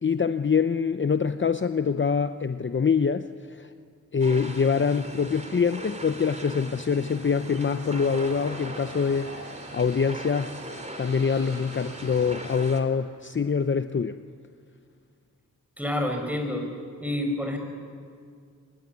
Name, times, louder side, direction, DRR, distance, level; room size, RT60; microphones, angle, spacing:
voice 1, 0.0-3.7 4.1-10.6 11.0-14.2, left 6 dB, 35° left, 10 dB, 0.8 m, -25 dB
sound 1, 4.2-12.8, right 1 dB, 20° right, 3.2 m, -40 dB
sound 2, 6.3-13.7, right 1 dB, 55° right, 6.6 m, -46 dB
voice 2, 15.8-16.6 17.0-17.6, left 1 dB, 5° right, 4 dB, 6.2 m, -28 dB
25.0 x 21.5 x 9.7 m, 2.2 s
cardioid pair, 70°, 32 cm